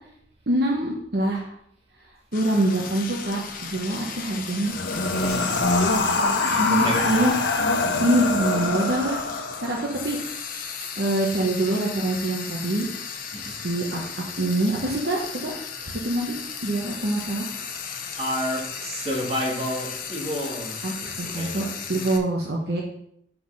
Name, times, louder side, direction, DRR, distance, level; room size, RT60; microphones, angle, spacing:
voice 1, 0.5-1.5 2.3-4.7 6.5-7.3 8.0-9.2 9.6-10.2 11.0-12.9 13.5-15.5 15.8-16.4 16.6-17.5 20.8-22.8, right 1 dB, 65° right, -2 dB, 1.2 m, -25 dB
Frying (food), 2.3-22.2, left 6 dB, 55° left, 0.9 m, -36 dB
sound 1, 4.6-9.9, left 3 dB, 80° left, 1.0 m, -24 dB
voice 2, 5.1-5.9 6.4-7.3 8.1-8.3 13.3-13.5 18.2-22.2, equal, 35° right, -2 dB, 2.0 m, -31 dB
5.9 x 5.6 x 5.7 m, 0.71 s
head